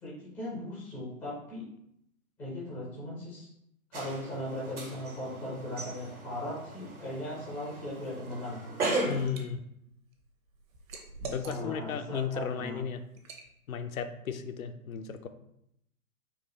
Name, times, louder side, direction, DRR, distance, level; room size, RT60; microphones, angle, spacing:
voice 1, 0.0-1.7 2.4-3.5 3.9-8.8 11.2-12.8, left 1 dB, 5° left, -8 dB, 0.4 m, -38 dB
sound 1, 3.9-9.3, right 2 dB, 80° right, 1.5 m, -37 dB
Liquid, 8.6-9.4 9.9-12.0 12.4-12.6 13.2-13.5, right 4 dB, 65° right, 1.0 m, -45 dB
voice 2, 9.1-9.6 11.3-13.0 13.7-15.3, left 7 dB, 70° left, 8 dB, 0.6 m, -35 dB
4.2 x 2.4 x 4.0 m, 0.76 s
figure-of-eight pair, 130°, 43 cm